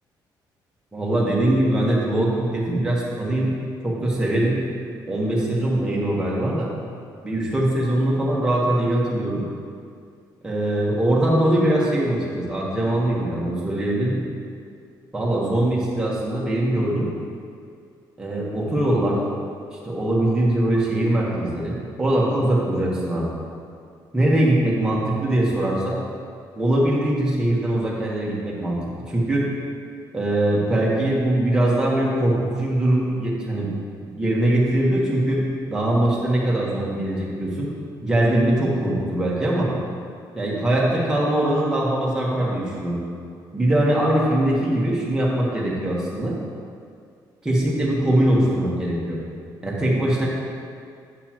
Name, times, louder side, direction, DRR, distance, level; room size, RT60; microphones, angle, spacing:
voice 1, 0.9-3.5 3.8-4.6 5.1-6.7 7.2-9.4 10.4-14.2 15.1-17.1 18.2-19.2 19.8-23.3 24.1-26.0 26.6-28.8 29.1-29.5 30.1-33.7 34.1-35.4 35.7-37.7 38.0-39.7 40.3-43.0 43.5-46.4 47.4-49.2 49.6-50.3, right 1 dB, 10° right, -5 dB, 1.2 m, -22 dB
9.3 x 7.2 x 3.0 m, 2.2 s
cardioid pair, 180°, 8 cm